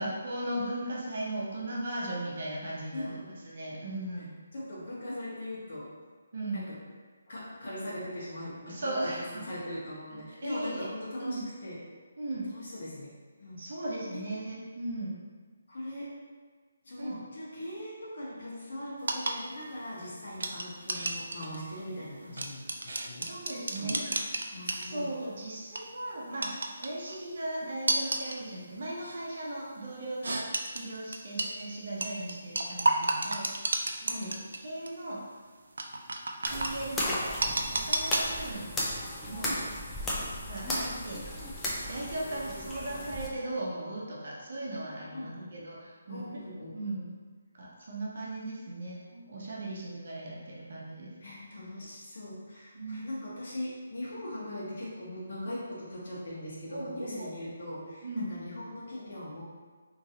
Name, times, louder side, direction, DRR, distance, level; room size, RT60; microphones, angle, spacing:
voice 1, 0.0-3.1 3.4-4.3 6.3-6.7 8.7-9.4 10.4-10.9 11.2-11.4 12.2-12.5 13.6-15.2 17.0-17.2 23.2-24.2 24.5-26.5 26.8-33.5 34.0-34.3 34.6-35.2 36.4-38.8 39.3-39.5 40.5-41.2 41.9-46.4 46.7-47.1 47.5-51.1 52.7-53.0 54.2-54.3 56.7-57.3 58.0-58.3, right 1 dB, 60° right, -4 dB, 0.8 m, -37 dB
voice 2, 2.9-3.3 4.2-4.3 4.5-5.9 6.5-6.8 7.3-11.8 12.5-13.1 13.4-13.6 14.1-14.2 15.7-16.1 16.8-25.1 34.1-34.4 39.4-39.7 45.1-45.5 46.1-46.8 51.2-59.4, left 1 dB, 55° left, -7 dB, 1.2 m, -40 dB
sound 1, 19.0-25.2 25.6-25.9 26.4-27.1 27.9-28.4 29.0-29.2 30.2-31.5 32.0-34.6 34.9-35.0 35.8-36.7 37.4-38.2, right 2 dB, 80° right, 0.3 m, -31 dB
sound 2, 36.5-43.3, left 1 dB, 10° left, 0.4 m, -35 dB
3.0 x 2.6 x 2.8 m, 1.5 s
hypercardioid pair, 165°, 0 cm